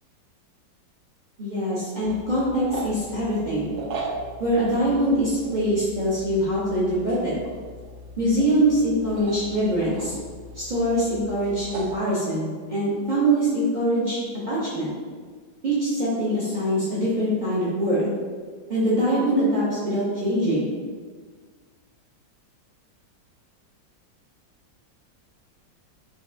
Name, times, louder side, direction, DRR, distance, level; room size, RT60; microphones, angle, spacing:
voice 1, 1.4-3.7 4.4-7.3 8.2-10.2 10.5-14.2 14.5-14.9 15.6-18.1 18.7-20.7, right 1 dB, 65° right, -9 dB, 0.4 m, -23 dB
Beagle bone, 2.0-12.0, right 2 dB, 90° right, 1.3 m, -38 dB
4.1 x 3.1 x 2.5 m, 1.5 s
omnidirectional pair, 2.0 m